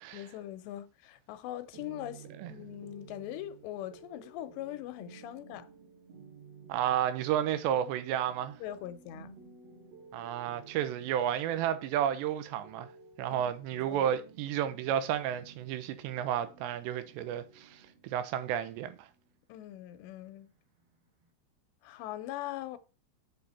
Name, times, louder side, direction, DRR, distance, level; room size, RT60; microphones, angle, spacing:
voice 1, 0.1-5.7 8.6-9.4 13.3-14.0 19.5-20.5 21.8-22.8, left 13 dB, 85° left, 3.0 m, -41 dB
sound 1, 1.7-21.3, right 5 dB, 50° right, 2.0 m, -54 dB
voice 2, 6.7-8.6 10.1-12.9 13.2-19.1, right 10 dB, 85° right, 3.0 m, -32 dB
7.7 x 6.5 x 4.2 m
omnidirectional pair, 5.0 m